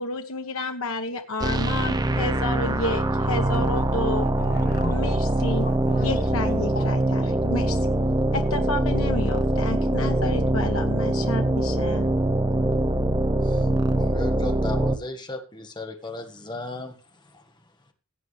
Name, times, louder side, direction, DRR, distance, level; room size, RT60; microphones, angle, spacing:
voice 1, 0.0-4.3 4.9-5.7 6.0-7.8 8.3-12.1, left 2 dB, 80° left, 1.2 m, -30 dB
sound 1, 1.4-15.0, right 1 dB, 20° right, 0.7 m, -23 dB
voice 2, 3.5-3.8 4.2-5.0 5.4-6.9, left 1 dB, 45° left, 1.2 m, -36 dB
voice 3, 13.4-17.9, left 2 dB, 20° left, 1.7 m, -37 dB
17.0 x 7.8 x 3.3 m
head